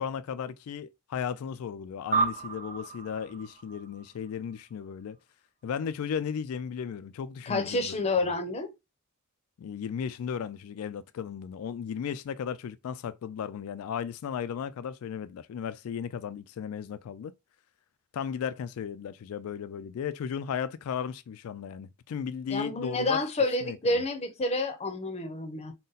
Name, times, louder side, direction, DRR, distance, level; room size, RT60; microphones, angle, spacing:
voice 1, 0.0-5.2 5.6-8.3 9.6-17.3 18.1-23.2 23.6-24.0, left 7 dB, 70° left, 0.3 m, -35 dB
sound 1, 2.1-4.9, right 4 dB, 40° right, 0.8 m, -32 dB
voice 2, 7.5-8.7 22.5-25.7, left 2 dB, 30° left, 0.7 m, -29 dB
3.9 x 2.1 x 3.9 m
head